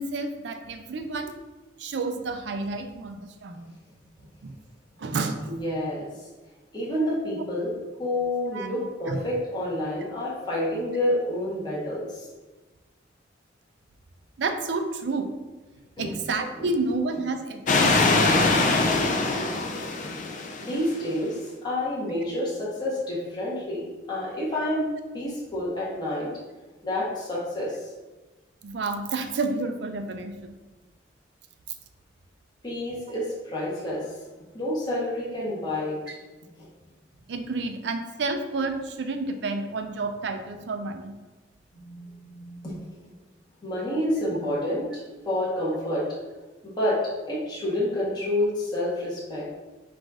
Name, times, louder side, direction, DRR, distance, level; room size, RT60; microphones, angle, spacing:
voice 1, 0.0-1.3 1.8-3.7 4.4-4.5 5.0-5.6 8.5-9.2 14.4-15.3 16.0-18.4 28.6-30.6 37.3-41.2, right 3 dB, 65° right, 7 dB, 0.4 m, -30 dB
voice 2, 5.4-6.1 6.7-7.7 8.0-12.3 16.0-16.1 16.6-16.7 18.0-19.7 20.0-20.1 20.6-26.3 26.8-27.9 32.6-34.1 34.5-36.0 36.6-36.7 41.7-43.1 43.6-46.1 46.6-47.0 47.3-49.5, left 1 dB, 25° left, -7 dB, 1.1 m, -29 dB
sound 1, 17.7-21.0, left 3 dB, 45° left, 0.5 m, -23 dB
4.0 x 2.5 x 4.7 m, 1.2 s
head